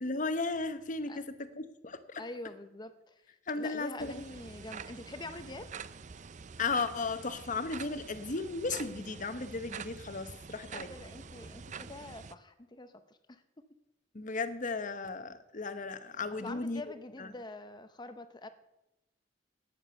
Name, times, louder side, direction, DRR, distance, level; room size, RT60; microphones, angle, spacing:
voice 1, 0.0-2.2 3.5-4.2 6.6-10.9 14.1-16.8 17.2-17.3, left 3 dB, 45° left, 11 dB, 1.0 m, -35 dB
voice 2, 2.2-5.7 10.7-13.4 16.4-18.5, left 2 dB, 25° left, 10 dB, 0.7 m, -45 dB
sound 1, 4.0-12.3, right 6 dB, 45° right, 0.5 m, -46 dB
12.0 x 9.3 x 6.9 m, 0.94 s
head